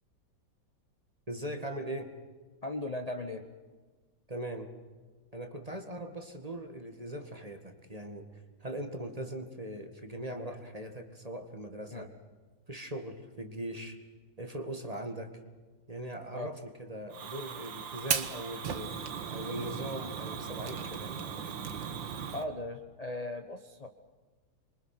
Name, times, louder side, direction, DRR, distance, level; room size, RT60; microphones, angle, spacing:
voice 1, 1.3-2.1 4.3-4.7 5.3-8.3 8.6-12.1 12.7-14.0 14.4-15.3 15.9-18.9 19.3-21.6, right 1 dB, 20° right, 6 dB, 2.0 m, -40 dB
voice 2, 2.6-3.4 11.9-12.1 16.3-16.5 22.3-23.9, left 2 dB, 25° left, 6 dB, 1.1 m, -37 dB
Fire, 17.1-22.4, right 7 dB, 75° right, 2.1 m, -37 dB
27.5 x 23.5 x 6.0 m, 1.4 s
omnidirectional pair, 2.1 m